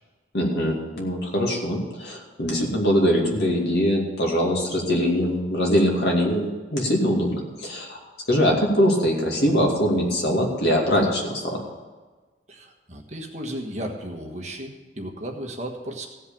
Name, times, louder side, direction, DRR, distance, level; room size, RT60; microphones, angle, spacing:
voice 1, 0.3-8.0 8.3-11.6, equal, 60° left, -1 dB, 2.4 m, -22 dB
voice 2, 12.5-16.1, right 1 dB, 35° right, 2 dB, 1.4 m, -34 dB
15.5 x 5.5 x 8.6 m, 1.3 s
head